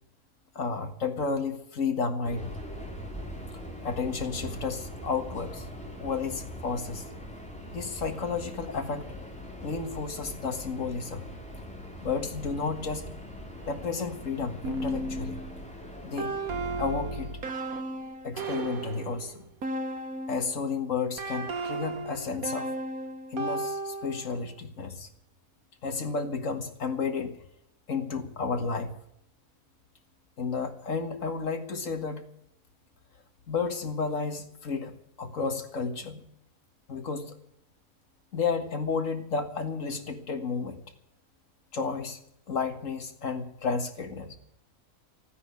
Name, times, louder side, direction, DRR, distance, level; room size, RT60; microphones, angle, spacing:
voice 1, 0.6-2.5 3.8-5.7 6.0-7.1 7.7-9.1 9.6-11.3 12.0-13.1 13.6-15.4 16.0-16.4 16.8-17.4 18.2-19.5 20.3-22.8 23.3-25.1 25.8-27.4 27.9-28.9 30.4-32.3 33.5-34.9 35.2-36.2 36.9-37.4 38.3-40.8 41.7-42.2 42.5-44.4, left 4 dB, 60° left, 7 dB, 2.0 m, -32 dB
Subway metro underground, 2.2-17.6, equal, 5° left, 3.0 m, -42 dB
sound 1, 14.6-20.6 21.2-24.4, right 2 dB, 75° right, 1.8 m, -34 dB
15.0 x 9.7 x 9.6 m, 0.73 s
omnidirectional pair, 1.5 m